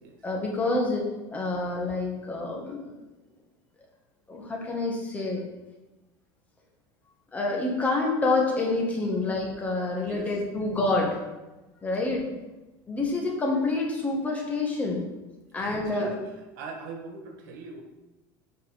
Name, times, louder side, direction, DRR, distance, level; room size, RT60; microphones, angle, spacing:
voice 1, 0.2-2.9 4.3-5.4 7.3-11.2 11.8-12.3 12.9-15.0 15.5-16.1, left 2 dB, 15° left, -1 dB, 1.6 m, -27 dB
voice 2, 10.0-10.7 15.6-16.2 16.5-17.8, right 3 dB, 90° right, 3 dB, 1.6 m, -41 dB
8.1 x 5.4 x 5.1 m, 1.1 s
cardioid pair, 155°, 10 cm